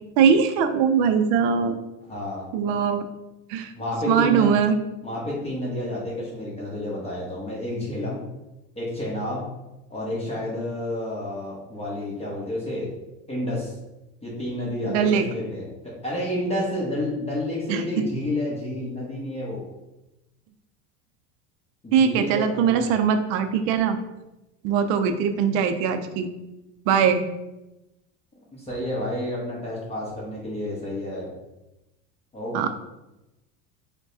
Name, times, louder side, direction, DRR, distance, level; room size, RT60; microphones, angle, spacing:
voice 1, 0.2-1.8 2.5-3.0 3.5-3.7 4.1-4.8 14.9-15.3 17.7-18.0 21.9-24.0 24.6-26.3 26.9-27.2 32.5-32.7, right 7 dB, 65° right, 8 dB, 0.5 m, -21 dB
voice 2, 2.1-2.4 3.7-4.5 5.0-8.2 8.7-9.5 9.9-12.9 13.3-13.8 14.2-19.6 21.8-22.9 28.5-31.3 32.3-32.7, left 1 dB, 15° left, -5 dB, 1.0 m, -30 dB
4.6 x 2.2 x 2.7 m, 0.97 s
supercardioid pair, 120°, 37 cm